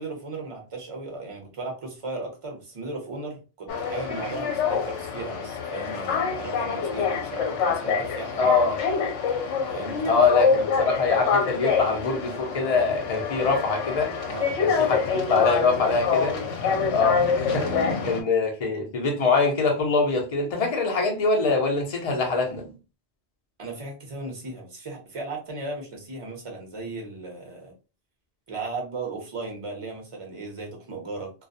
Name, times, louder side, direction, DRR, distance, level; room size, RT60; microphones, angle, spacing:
voice 1, 0.0-8.5 9.7-10.2 10.6-10.7 14.3-14.9 17.5-18.2 23.6-27.7 28.5-31.3, right 3 dB, 30° right, 0.7 m, -36 dB
sound 1, 3.7-18.2, left 5 dB, 75° left, 0.9 m, -26 dB
voice 2, 8.4-8.8 10.1-14.1 14.6-15.0 15.3-16.4 16.9-22.7, left 4 dB, 40° left, 0.6 m, -24 dB
2.3 x 2.1 x 2.6 m
omnidirectional pair, 1.3 m